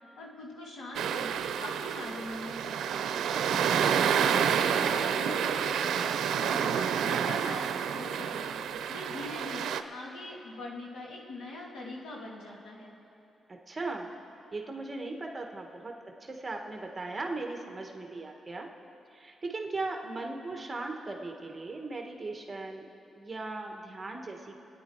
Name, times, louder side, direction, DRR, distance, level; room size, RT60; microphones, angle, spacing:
voice 1, 0.1-3.1 3.7-6.1 6.4-8.5 8.9-12.9, left 2 dB, 85° left, -2 dB, 2.6 m, -42 dB
sound 1, 0.9-9.8, right 8 dB, 90° right, 0.6 m, -29 dB
voice 2, 13.5-14.1 14.5-15.9 16.2-18.7 19.1-22.9 23.2-24.6, right 3 dB, 25° right, 2 dB, 1.6 m, -38 dB
26.0 x 9.6 x 4.7 m, 2.9 s
cardioid pair, 105°, 0 cm